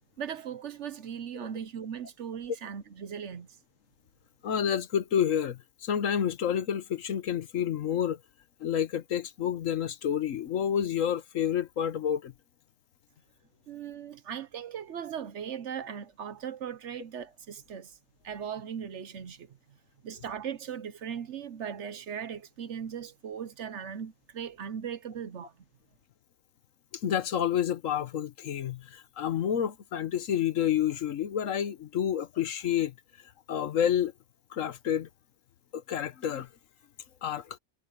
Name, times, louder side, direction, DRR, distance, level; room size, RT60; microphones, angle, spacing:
voice 1, 0.2-3.5 13.7-18.0 18.2-19.5 20.0-25.5, right 8 dB, 60° right, 1.0 m, -38 dB
voice 2, 4.4-8.2 8.6-12.3 27.0-32.9 33.5-34.1 34.5-35.1 35.7-36.5 37.2-37.6, left 9 dB, 65° left, 1.2 m, -29 dB
omnidirectional pair, 1.5 m